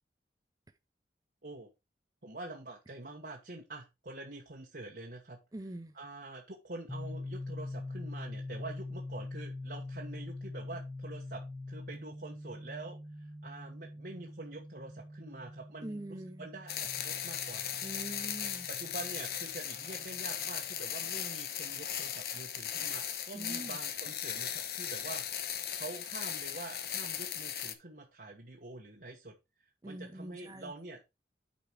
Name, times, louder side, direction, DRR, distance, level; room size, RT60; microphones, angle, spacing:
voice 1, 2.2-5.4 5.9-17.6 18.7-31.0, right 2 dB, 55° right, 1.3 m, -46 dB
voice 2, 5.5-5.9 15.8-16.5 17.8-18.7 23.3-23.8 29.8-30.7, right 1 dB, 20° right, 0.5 m, -43 dB
sound 1, 6.9-20.5, left 2 dB, 5° left, 1.3 m, -44 dB
sound 2, 16.7-27.7, left 9 dB, 55° left, 1.0 m, -37 dB
8.7 x 5.1 x 4.5 m
head